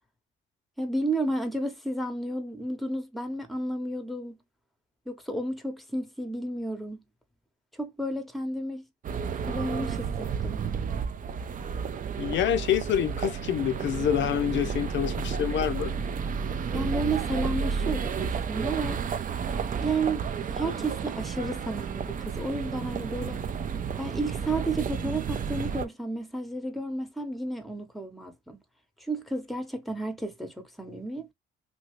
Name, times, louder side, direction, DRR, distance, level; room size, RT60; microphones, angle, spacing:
voice 1, 0.8-4.4 5.1-7.0 7.7-8.9 9.4-10.6 16.7-19.0 19.8-23.4 24.0-28.6 29.0-31.3, right 2 dB, ahead, 0.8 m, -32 dB
sound 1, 9.0-25.9, right 6 dB, 45° right, 0.5 m, -31 dB
voice 2, 12.2-15.9, left 10 dB, 70° left, 0.4 m, -27 dB
2.8 x 2.8 x 3.0 m
cardioid pair, 90°, 20 cm